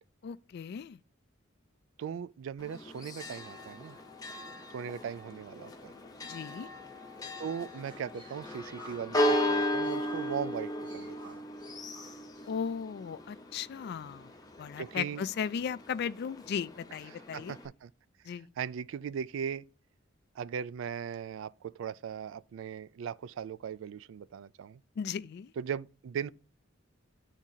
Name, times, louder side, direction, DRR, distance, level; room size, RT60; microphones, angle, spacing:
voice 1, 0.2-1.0 6.3-6.7 12.4-14.3 14.6-17.5 18.3-18.5 25.0-25.5, left 7 dB, 55° left, 0.3 m, -36 dB
voice 2, 2.0-4.0 4.7-5.9 7.4-11.4 14.8-15.2 17.1-17.9 18.3-19.6 20.4-24.8 25.6-26.3, right 7 dB, 75° right, 0.3 m, -39 dB
Church bell, 2.6-17.7, left 1 dB, 20° left, 0.8 m, -36 dB
sound 1, 7.7-12.8, right 1 dB, 25° right, 1.4 m, -55 dB
10.5 x 3.6 x 2.7 m
head